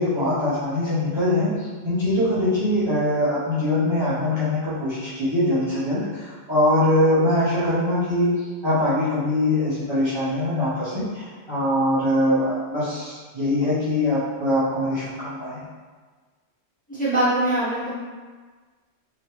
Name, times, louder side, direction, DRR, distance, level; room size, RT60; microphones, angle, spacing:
voice 1, 0.0-8.3 8.6-15.6, left 1 dB, 25° right, -13 dB, 0.9 m, -22 dB
voice 2, 16.9-17.9, right 1 dB, 5° left, -12 dB, 1.1 m, -22 dB
3.3 x 3.0 x 3.0 m, 1.4 s
omnidirectional pair, 1.3 m